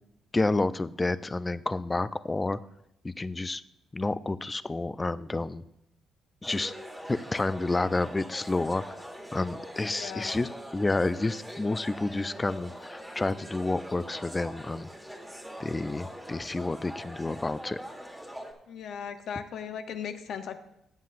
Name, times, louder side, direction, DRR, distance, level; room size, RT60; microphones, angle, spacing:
voice 1, 0.3-2.6 3.0-3.6 3.9-5.6 6.4-6.7 7.1-8.8 9.3-14.9 15.6-17.8, left 2 dB, 20° left, 15 dB, 0.4 m, -29 dB
sound 1, 6.4-18.5, equal, ahead, 1.5 m, -43 dB
voice 2, 9.9-10.4 18.7-20.6, left 7 dB, 70° left, 8 dB, 0.8 m, -37 dB
15.5 x 7.5 x 2.5 m, 0.81 s
cardioid pair, 90°, 0 cm